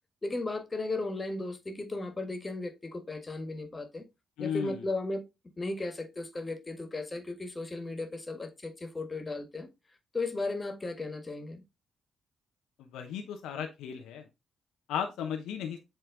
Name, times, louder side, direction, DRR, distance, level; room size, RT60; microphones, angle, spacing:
voice 1, 0.2-4.0 4.4-5.2 5.6-9.7 10.1-11.6, left 2 dB, 30° left, 1.7 m, -35 dB
voice 2, 4.4-4.8 12.9-14.2 14.9-15.8, left 8 dB, 75° left, 0.8 m, -35 dB
8.0 x 3.2 x 3.7 m
hypercardioid pair, 40°, 0 cm